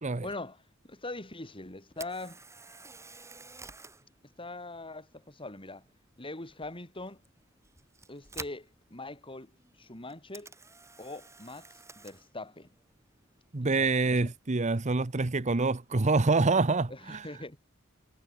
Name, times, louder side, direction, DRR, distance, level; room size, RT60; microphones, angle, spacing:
voice 1, 0.2-2.4 4.4-5.8 6.2-7.2 8.1-9.5 9.8-10.5 11.0-12.7 13.6-14.3 16.9-17.6, left 2 dB, 25° left, 5.5 m, -42 dB
Camera, 1.9-15.9, right 3 dB, 15° right, 5.8 m, -52 dB
voice 2, 13.5-17.3, right 3 dB, 35° right, 0.9 m, -26 dB
head